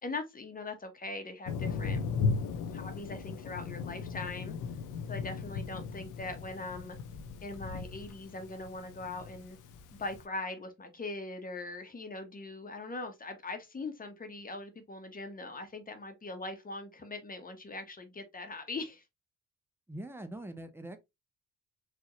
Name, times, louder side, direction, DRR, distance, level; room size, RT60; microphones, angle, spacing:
voice 1, 0.0-2.0 2.7-4.6 5.1-7.0 7.4-9.6 10.0-19.0, left 2 dB, 30° left, 1.3 m, -41 dB
Thunder, 1.5-10.2, left 5 dB, 85° left, 0.8 m, -37 dB
voice 2, 19.9-21.0, right 1 dB, 10° right, 0.9 m, -42 dB
4.7 x 2.8 x 3.1 m
cardioid pair, 90°, 30 cm